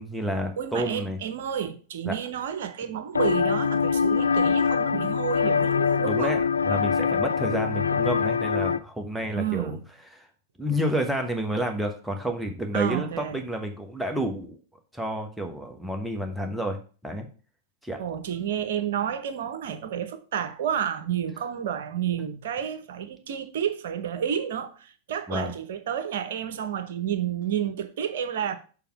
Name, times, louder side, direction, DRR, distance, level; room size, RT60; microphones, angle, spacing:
voice 1, 0.0-1.2 2.0-2.2 6.0-9.8 10.6-14.6 14.9-16.8 17.0-17.3 17.8-18.0 25.3-25.5, equal, 5° right, 1.3 m, -30 dB
voice 2, 0.6-6.4 9.4-9.8 12.7-13.4 18.0-28.5, right 9 dB, 60° right, 0.9 m, -30 dB
sound 1, 3.1-8.8, left 6 dB, 80° left, 0.3 m, -24 dB
6.9 x 3.6 x 6.0 m
figure-of-eight pair, 90°, 0 cm